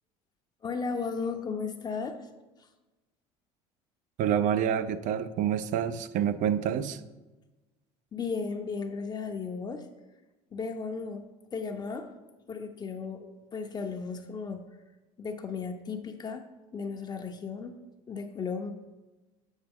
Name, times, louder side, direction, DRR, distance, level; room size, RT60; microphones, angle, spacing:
voice 1, 0.6-2.3 8.1-9.9 10.5-12.1 12.5-14.6 15.2-17.8 18.1-18.7, left 5 dB, 25° left, 0.6 m, -35 dB
voice 2, 4.2-7.0, right 9 dB, 55° right, 0.5 m, -27 dB
8.0 x 4.9 x 3.6 m
supercardioid pair, 95°, 15 cm